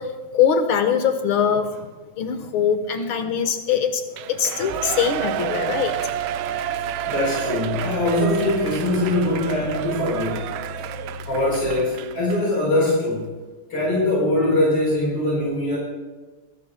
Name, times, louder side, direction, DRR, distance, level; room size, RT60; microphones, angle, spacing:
voice 1, 0.0-1.9 2.2-6.0, left 7 dB, 70° left, 7 dB, 2.0 m, -22 dB
Shout / Cheering, 4.1-12.5 12.9-13.0, right 12 dB, 75° right, 1.3 m, -30 dB
sound 1, 4.4-4.5 4.7-12.5, left 2 dB, 20° left, 1.7 m, -39 dB
voice 2, 7.1-10.5 11.3-13.3 13.7-15.8, left 1 dB, 90° left, -5 dB, 5.4 m, -22 dB
24.0 x 13.5 x 2.2 m, 1.3 s
omnidirectional pair, 2.4 m